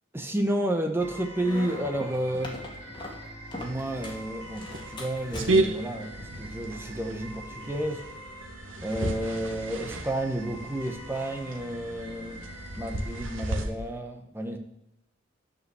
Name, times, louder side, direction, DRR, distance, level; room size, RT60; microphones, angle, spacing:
voice 1, 0.1-2.6 3.6-8.1 8.7-12.5 12.7-14.6, right 1 dB, 10° right, 4 dB, 1.0 m, -31 dB
sound 1, 1.0-13.6, equal, 70° right, 2.6 m, -44 dB
sound 2, 1.4-4.3 4.6-5.9, left 1 dB, 25° left, 2.1 m, -40 dB
sound 3, 4.0-13.6, right 2 dB, 85° right, 1.3 m, -33 dB
11.0 x 5.4 x 8.1 m, 0.81 s
head